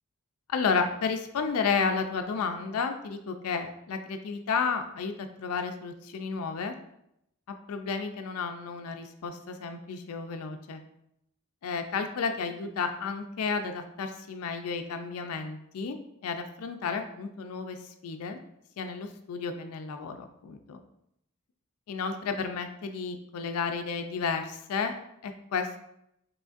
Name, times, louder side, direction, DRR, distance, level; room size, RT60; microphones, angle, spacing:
voice 1, 0.5-6.7 7.5-10.8 11.6-16.0 16.2-17.8 18.0-18.4 18.8-20.8 21.9-24.9 25.2-25.8, left 5 dB, 75° left, 7 dB, 0.4 m, -32 dB
5.0 x 3.1 x 2.4 m, 0.78 s
head